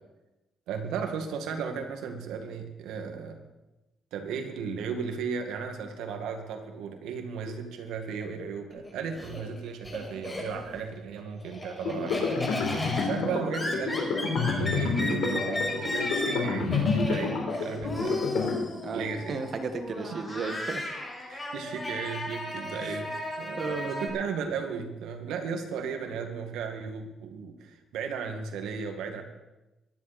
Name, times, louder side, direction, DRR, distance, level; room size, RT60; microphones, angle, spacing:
voice 1, 0.7-3.4 4.1-12.4 13.0-18.4 18.9-19.4 20.1-20.2 21.3-29.2, right 6 dB, 90° right, 5 dB, 2.1 m, -35 dB
Laughter, 8.7-10.8 11.2-24.1, left 2 dB, 15° left, 5.1 m, -35 dB
sound 1, 11.8-18.5, left 4 dB, 90° left, 4.0 m, -29 dB
voice 2, 18.8-20.8 22.7-22.9 23.6-24.3, right 4 dB, 50° right, 7 dB, 1.9 m, -35 dB
24.0 x 11.0 x 4.4 m, 1.0 s
cardioid pair, 90°, 0 cm